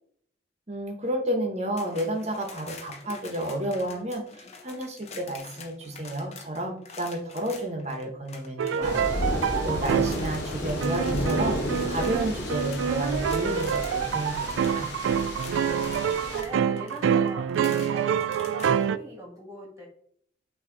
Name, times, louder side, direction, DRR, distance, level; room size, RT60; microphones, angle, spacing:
voice 1, 0.7-14.9, right 1 dB, 35° right, 3 dB, 1.0 m, -31 dB
sound 1, 1.8-14.0 14.2-18.9, left 5 dB, 35° left, 0.7 m, -46 dB
sound 2, 8.6-10.2 10.8-19.0, right 8 dB, 90° right, 0.3 m, -26 dB
sound 3, 8.8-16.4, left 1 dB, 60° left, 1.4 m, -32 dB
voice 2, 9.8-10.3 15.5-19.9, right 1 dB, 15° right, -1 dB, 1.5 m, -43 dB
8.6 x 2.9 x 3.9 m, 0.65 s
head